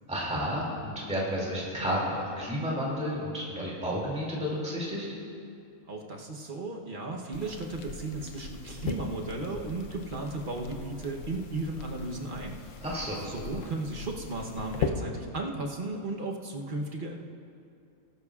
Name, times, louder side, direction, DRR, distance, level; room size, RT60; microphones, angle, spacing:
voice 1, 0.1-5.1 12.8-13.2, equal, 5° right, -5 dB, 2.4 m, -31 dB
voice 2, 5.9-12.6 13.2-17.2, right 2 dB, 40° right, 0 dB, 1.0 m, -35 dB
sound 1, 7.3-14.9, left 6 dB, 65° left, 1.0 m, -39 dB
19.0 x 12.5 x 2.4 m, 2.4 s
omnidirectional pair, 1.5 m